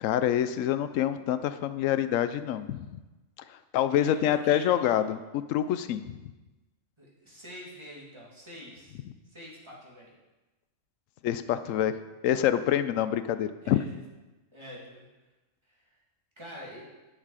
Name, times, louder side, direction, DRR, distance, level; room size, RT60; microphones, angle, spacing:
voice 1, 0.0-2.9 3.5-6.2 11.2-11.9 12.2-13.8, left 11 dB, 85° left, 12 dB, 1.0 m, -26 dB
voice 2, 3.9-4.7 7.0-9.0 9.3-10.1 13.6-14.0 14.5-15.1 15.7-15.9 16.4-16.9, equal, 20° right, -5 dB, 2.4 m, -46 dB
10.5 x 6.6 x 4.9 m, 1.1 s
omnidirectional pair, 1.3 m